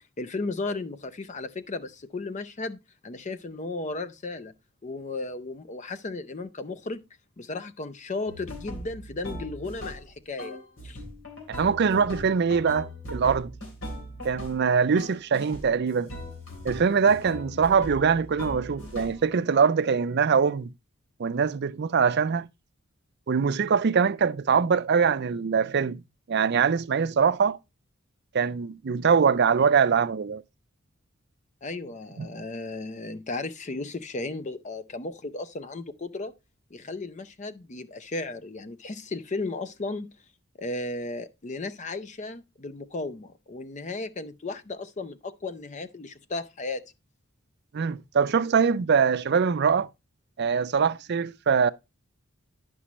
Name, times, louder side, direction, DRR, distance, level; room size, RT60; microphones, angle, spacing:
voice 1, 0.2-4.5 4.8-7.0 7.4-10.6 10.8-11.0 31.6-36.3 36.7-40.1 40.6-46.8, left 3 dB, 35° left, 0.6 m, -35 dB
sound 1, 8.3-10.1 10.4-14.7 15.0-15.7 16.1-19.3, equal, 65° left, 3.3 m, -39 dB
voice 2, 11.5-13.5 14.2-16.1 16.6-20.7 21.2-22.5 23.3-26.0 26.3-27.6 28.3-30.4 32.2-32.3 47.7-49.9 50.4-51.7, right 6 dB, 55° right, 0.4 m, -23 dB
9.8 x 6.1 x 3.0 m
head